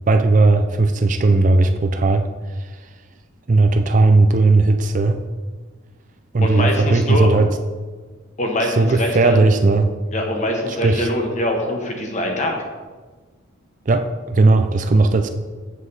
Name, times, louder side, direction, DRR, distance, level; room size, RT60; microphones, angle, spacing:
voice 1, 0.1-2.3 2.6-2.7 3.5-5.2 6.3-7.5 8.6-9.9 10.7-11.1 13.9-15.3, right 3 dB, 40° right, 7 dB, 0.4 m, -16 dB
voice 2, 6.4-7.3 8.4-9.4 10.1-12.5, left 1 dB, 35° left, 2 dB, 1.3 m, -23 dB
8.2 x 7.4 x 4.0 m, 1.4 s
head